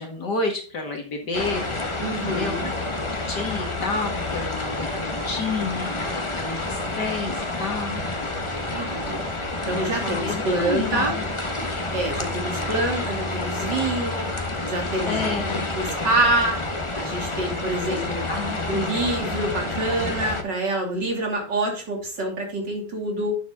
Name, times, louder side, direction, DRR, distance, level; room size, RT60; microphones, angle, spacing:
voice 1, 0.0-1.6 2.3-2.5 3.0-8.0 9.7-11.2 15.1-15.7 17.8-17.9 18.3-18.6, left 3 dB, 60° left, 3 dB, 2.2 m, -30 dB
sound 1, 1.3-20.4, left 2 dB, 20° left, 1.1 m, -29 dB
voice 2, 2.0-2.7 8.7-9.3 9.7-11.2 11.9-14.3 14.6-15.4 15.7-16.6 16.9-18.3 18.7-23.4, right 2 dB, 60° right, 0 dB, 3.8 m, -26 dB
10.5 x 7.2 x 3.7 m, 0.38 s
omnidirectional pair, 2.1 m